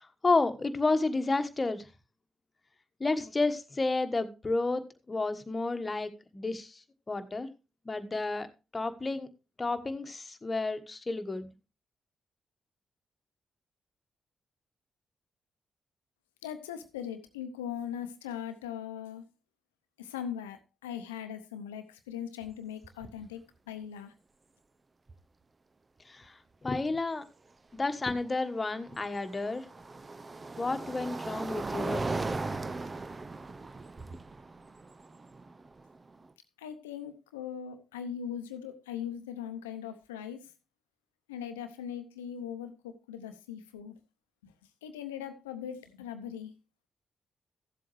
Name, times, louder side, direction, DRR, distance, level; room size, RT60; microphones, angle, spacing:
voice 1, 0.2-1.9 3.0-4.8 5.1-6.8 7.1-7.5 7.8-8.5 8.7-9.3 9.6-11.5 26.1-27.2 27.7-29.7 30.6-32.3, left 3 dB, 30° left, 9 dB, 1.3 m, -31 dB
voice 2, 16.4-19.2 20.0-24.1 36.6-40.5 41.3-44.0 44.4-44.5 44.8-46.5, left 9 dB, 90° left, 9 dB, 0.8 m, -40 dB
sound 1, 22.4-22.5 22.8-23.3 25.1-25.2 28.2-36.3, right 3 dB, 35° right, 0.7 m, -38 dB
15.0 x 7.7 x 3.2 m, 0.29 s
hypercardioid pair, 40°, 0 cm